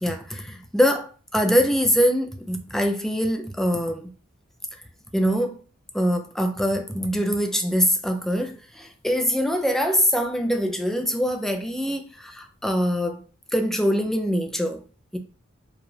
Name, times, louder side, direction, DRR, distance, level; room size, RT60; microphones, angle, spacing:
voice 1, 0.0-4.1 5.1-5.6 5.9-13.2 13.5-14.8 15.1-15.2, equal, ahead, 0.5 m, -23 dB
4.8 x 2.4 x 3.2 m
head